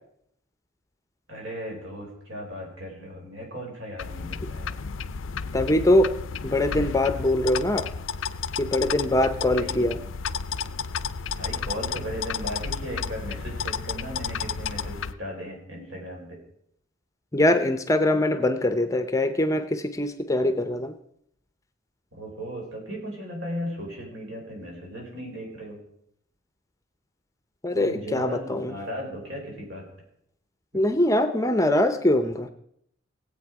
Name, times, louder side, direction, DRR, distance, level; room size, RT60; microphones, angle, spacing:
voice 1, 1.3-4.8 9.5-10.0 11.4-16.4 22.1-25.8 27.7-29.9, equal, 70° right, -1 dB, 4.8 m, -36 dB
sound 1, 4.0-15.1, left 6 dB, 70° left, 0.5 m, -32 dB
voice 2, 5.5-6.1 6.4-7.9 8.6-10.0 17.3-20.9 27.6-28.7 30.7-32.5, left 1 dB, 15° left, 9 dB, 0.6 m, -23 dB
18.0 x 8.1 x 4.8 m, 0.72 s
head